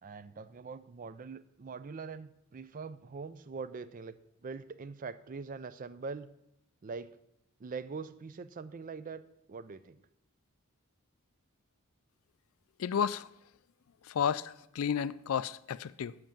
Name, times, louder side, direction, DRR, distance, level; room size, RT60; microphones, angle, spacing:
voice 1, 0.0-4.1 4.4-6.3 6.8-7.2 7.6-9.2 9.5-10.0, right 4 dB, 40° right, 0.4 m, -43 dB
voice 2, 12.8-13.3 14.0-16.2, left 7 dB, 65° left, 0.4 m, -32 dB
7.8 x 6.3 x 7.2 m
head